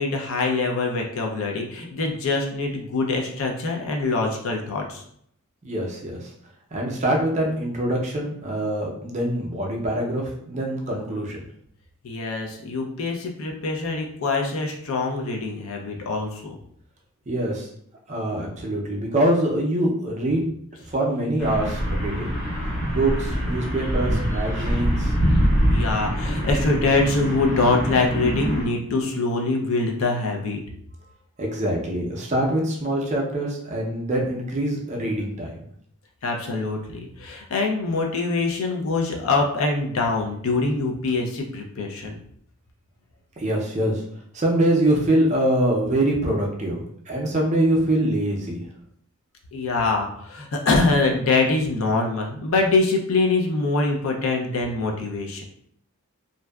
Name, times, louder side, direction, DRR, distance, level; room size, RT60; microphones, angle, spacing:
voice 1, 0.0-5.0 12.0-16.6 25.7-30.6 36.2-42.2 49.5-55.4, left 3 dB, 65° left, 1 dB, 0.4 m, -24 dB
voice 2, 5.6-6.3 6.7-11.4 17.3-17.7 18.1-20.4 20.9-22.3 22.9-25.1 31.4-35.7 43.4-44.0 44.3-48.6, right 1 dB, 30° right, -1 dB, 0.4 m, -24 dB
sound 1, 21.4-28.6, equal, 85° left, 1.4 m, -24 dB
2.6 x 2.2 x 2.2 m, 0.67 s
head